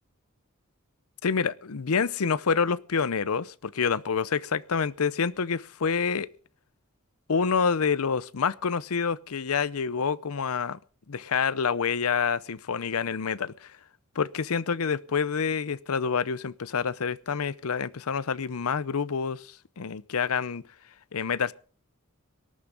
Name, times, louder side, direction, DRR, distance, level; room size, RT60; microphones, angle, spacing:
voice 1, 1.2-6.3 7.3-10.8 11.1-13.7 14.2-19.5 19.8-20.6 21.1-21.5, left 6 dB, 75° left, 0.6 m, -27 dB
18.5 x 13.5 x 3.9 m
head